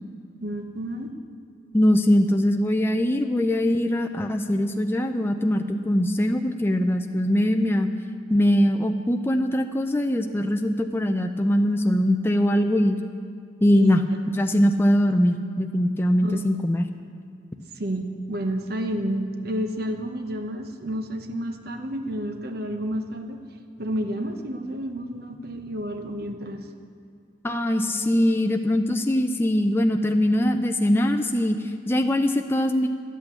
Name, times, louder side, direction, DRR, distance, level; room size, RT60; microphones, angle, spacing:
voice 1, 0.4-1.1 13.7-14.2 16.2-16.4 17.7-23.4 23.8-26.7, right 1 dB, 55° right, 5 dB, 0.9 m, -30 dB
voice 2, 1.7-7.9 8.3-13.0 13.6-14.0 14.3-16.9 27.4-32.9, equal, 10° left, 5 dB, 0.4 m, -22 dB
11.5 x 8.3 x 8.7 m, 2.3 s
head